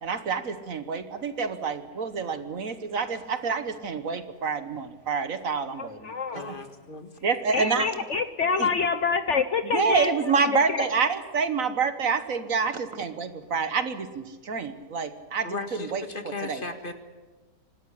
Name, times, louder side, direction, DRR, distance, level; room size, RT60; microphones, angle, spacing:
voice 1, 0.0-6.4 7.2-7.9 8.6-8.7 9.6-16.0 16.4-16.6, right 5 dB, 60° right, 11 dB, 1.6 m, -28 dB
voice 2, 5.8-6.5 7.5-10.1 10.7-10.9, left 5 dB, 55° left, 11 dB, 1.0 m, -26 dB
voice 3, 6.3-7.1 15.4-16.9, left 3 dB, 35° left, 8 dB, 1.9 m, -36 dB
25.5 x 13.0 x 9.9 m, 1.3 s
omnidirectional pair, 1.7 m